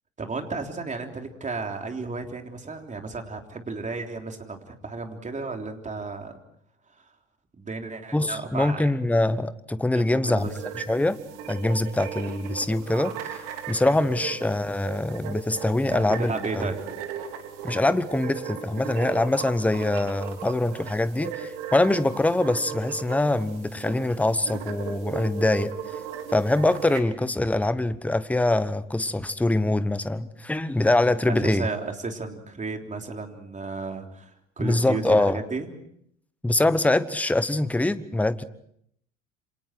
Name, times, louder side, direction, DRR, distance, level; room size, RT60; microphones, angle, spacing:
voice 1, 0.2-6.3 7.6-8.9 9.9-10.5 14.0-14.2 15.9-16.8 31.3-34.3 34.6-35.7, right 3 dB, 20° right, 3 dB, 3.6 m, -33 dB
voice 2, 8.1-10.5 10.7-11.2 11.5-16.6 17.6-26.0 26.3-31.7 34.6-35.4 36.4-38.4, left 2 dB, 5° left, 15 dB, 1.1 m, -24 dB
sound 1, 10.4-27.0, right 8 dB, 65° right, 3.4 m, -37 dB
28.0 x 26.5 x 4.6 m, 0.69 s
figure-of-eight pair, 75°, 38 cm